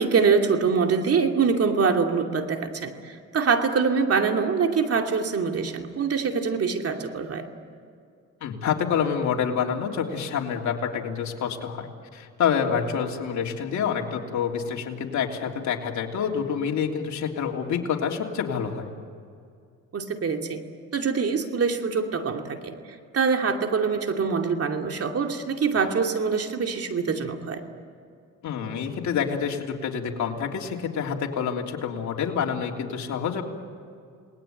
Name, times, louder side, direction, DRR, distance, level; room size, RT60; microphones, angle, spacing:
voice 1, 0.0-7.4 19.9-20.6 20.9-22.7 23.1-27.6, right 5 dB, 50° right, 4 dB, 2.7 m, -24 dB
voice 2, 8.4-18.9 28.4-33.4, left 7 dB, 70° left, 0 dB, 3.2 m, -27 dB
29.0 x 19.5 x 9.1 m, 2.3 s
cardioid pair, 90°, 30 cm